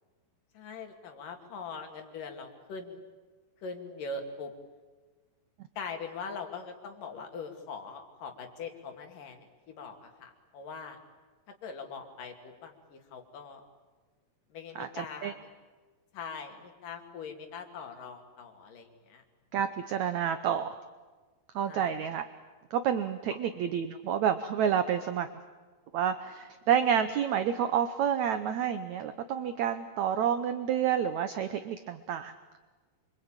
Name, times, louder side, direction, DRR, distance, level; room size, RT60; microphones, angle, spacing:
voice 1, 0.5-3.0 3.6-4.5 5.8-11.0 11.6-13.6 14.5-15.5 16.1-19.2 21.7-21.9, left 4 dB, 65° left, 4 dB, 3.9 m, -42 dB
voice 2, 14.7-15.3 19.5-20.7 21.5-22.2 22.7-25.3 25.9-32.3, right 8 dB, 70° right, 10 dB, 1.8 m, -29 dB
26.5 x 24.5 x 8.9 m, 1.3 s
omnidirectional pair, 4.3 m